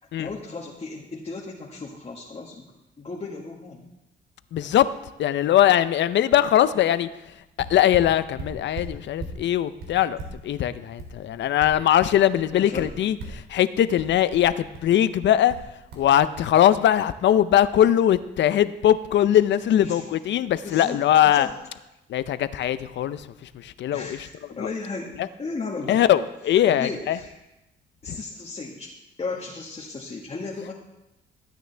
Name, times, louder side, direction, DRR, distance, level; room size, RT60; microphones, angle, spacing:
voice 1, 0.2-2.6 3.0-3.8 12.5-13.0 19.8-20.0 20.6-21.6 23.9-25.1 25.4-26.0 26.5-27.3 28.0-28.9 29.2-30.7, left 3 dB, 30° left, -2 dB, 1.6 m, -35 dB
voice 2, 4.5-4.9 5.2-7.1 7.7-13.2 13.5-15.5 16.0-21.5 22.1-23.3 23.6-24.2 24.6-24.7 25.9-27.2 28.1-28.2, left 11 dB, 65° left, 14 dB, 0.6 m, -21 dB
sound 1, 7.6-9.4 9.8-12.1 12.4-13.5 14.0-15.0 15.5-16.1 16.4-16.5, right 2 dB, 85° right, 2.7 m, -38 dB
14.0 x 9.1 x 3.4 m, 0.96 s
cardioid pair, 90°, 20 cm